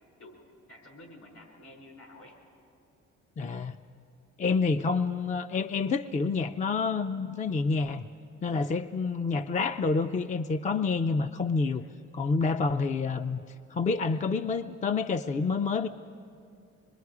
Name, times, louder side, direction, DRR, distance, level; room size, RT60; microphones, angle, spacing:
voice 1, 0.7-2.4 8.6-8.8 11.7-12.0, left 1 dB, 65° left, 1 dB, 5.0 m, -51 dB
voice 2, 3.4-3.8 4.4-8.1 8.4-11.8 12.1-13.4 13.7-15.9, left 4 dB, 25° left, 9 dB, 0.4 m, -28 dB
26.0 x 21.5 x 4.8 m, 2.5 s
cardioid pair, 90°, 30 cm